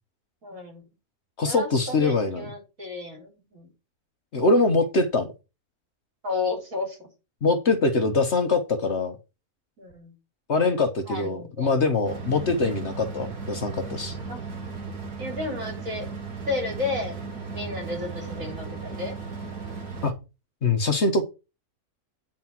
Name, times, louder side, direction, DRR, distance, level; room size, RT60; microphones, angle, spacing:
voice 1, 0.4-0.8 1.4-3.7 6.2-7.1 9.8-10.1 11.1-11.7 14.3-14.4 15.2-16.1 16.5-17.2 17.5-19.1, left 3 dB, 60° right, 1 dB, 4.4 m, -32 dB
voice 2, 1.4-2.5 4.3-5.3 7.4-9.2 10.5-14.2 20.0-20.1 20.6-21.2, left 3 dB, 50° left, 7 dB, 1.3 m, -23 dB
sound 1, 12.0-20.1, right 4 dB, 90° right, 2.3 m, -36 dB
9.3 x 4.9 x 5.9 m, 0.28 s
omnidirectional pair, 1.6 m